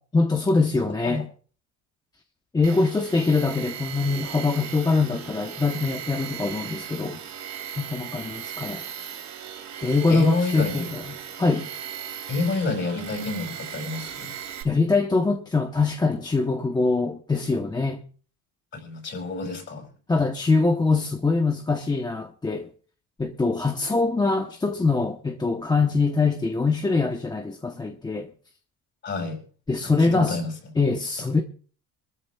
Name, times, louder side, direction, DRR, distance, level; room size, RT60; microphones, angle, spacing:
voice 1, 0.1-1.2 2.5-7.2 7.8-8.8 9.8-11.7 14.6-18.0 20.1-22.7 23.2-28.3 29.7-30.4 30.8-31.4, left 3 dB, 10° left, 0.8 m, -23 dB
voice 2, 0.9-1.2 10.1-10.9 12.3-14.3 18.7-19.9 29.0-29.4 29.8-30.5, left 3 dB, 35° left, 4.9 m, -29 dB
Tools, 2.6-14.6, right 9 dB, 55° right, 3.2 m, -37 dB
24.0 x 13.0 x 2.3 m
cardioid pair, 135°, 34 cm